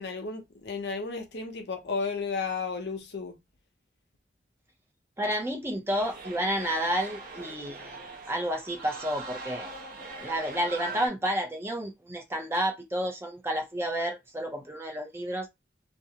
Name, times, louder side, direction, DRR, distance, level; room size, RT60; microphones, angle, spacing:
voice 1, 0.0-3.3, left 4 dB, 70° left, 0.6 m, -33 dB
voice 2, 5.2-7.9 8.3-9.7 10.2-15.5, equal, 15° right, 0.5 m, -30 dB
sound 1, 5.9-11.1, right 3 dB, 50° right, 0.7 m, -41 dB
2.4 x 2.1 x 2.7 m
head